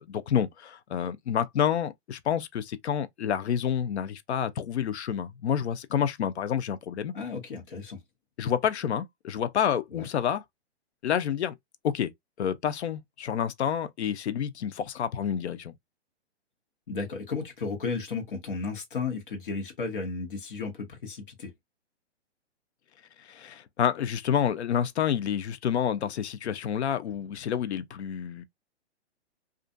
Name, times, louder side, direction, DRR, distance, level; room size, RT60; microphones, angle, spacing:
voice 1, 0.0-7.1 8.4-10.4 11.0-11.5 11.8-12.1 12.4-15.7 23.2-28.5, left 9 dB, 70° left, 0.5 m, -29 dB
voice 2, 7.1-8.0 9.9-10.1 16.9-21.5, left 4 dB, 50° left, 1.0 m, -34 dB
2.5 x 2.1 x 2.5 m
hypercardioid pair, 175°, 34 cm